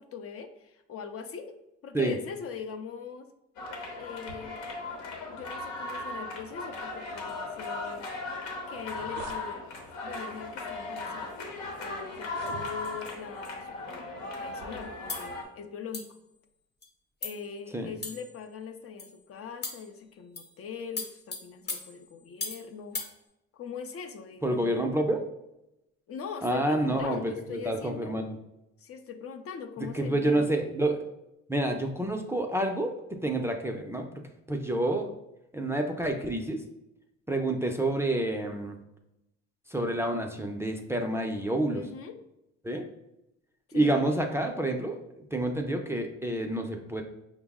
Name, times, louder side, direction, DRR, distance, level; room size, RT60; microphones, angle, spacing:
voice 1, 0.0-1.6 1.8-3.3 4.0-4.6 5.3-8.1 8.7-9.6 10.0-11.4 11.8-16.1 17.2-23.0 23.5-24.8 26.1-28.2 28.8-30.5 41.7-42.2 43.7-44.0, left 6 dB, 50° left, 7 dB, 0.5 m, -41 dB
sound 1, 3.6-15.4, left 2 dB, 90° left, 0.9 m, -37 dB
sound 2, 8.7-9.4 10.3-10.5 11.2-11.3 12.2-13.1, right 6 dB, 85° right, 0.4 m, -45 dB
sound 3, 15.1-15.3 15.9-16.2 16.8-16.9 17.2-17.5 18.0-18.4 19.0-19.2 19.6-19.9 20.4-20.6 21.0-22.7 22.9-23.1, left 3 dB, 35° left, 1.0 m, -37 dB
voice 2, 24.4-25.2 26.4-28.4 29.9-31.0 31.5-34.2 34.5-35.1 35.5-36.6 37.3-38.8 39.7-41.8 42.6-42.8 43.7-47.0, right 1 dB, 10° right, 3 dB, 0.4 m, -28 dB
5.2 x 2.0 x 3.5 m, 0.88 s
cardioid pair, 95°, 29 cm